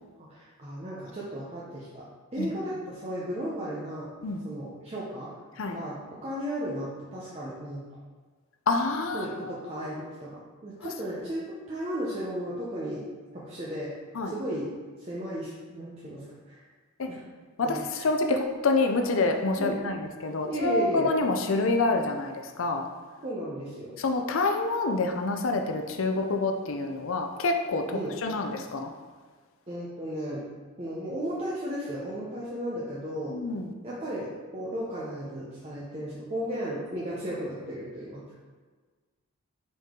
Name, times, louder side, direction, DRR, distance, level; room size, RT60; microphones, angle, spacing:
voice 1, 0.2-2.0 2.3-4.1 4.4-5.3 5.7-7.8 9.1-10.3 10.6-13.0 13.3-13.9 14.2-14.7 15.0-16.6 17.1-17.2 17.6-18.1 19.6-19.8 20.4-21.1 23.2-23.9 27.9-28.1 29.7-30.4 30.8-33.4 33.8-38.4, equal, 30° right, -7 dB, 0.9 m, -35 dB
voice 2, 8.7-9.8 10.8-10.9 14.2-14.3 17.0-17.1 17.6-22.9 24.0-28.9 33.3-33.7, left 3 dB, 60° left, 4 dB, 0.5 m, -27 dB
5.4 x 5.3 x 3.7 m, 1.4 s
head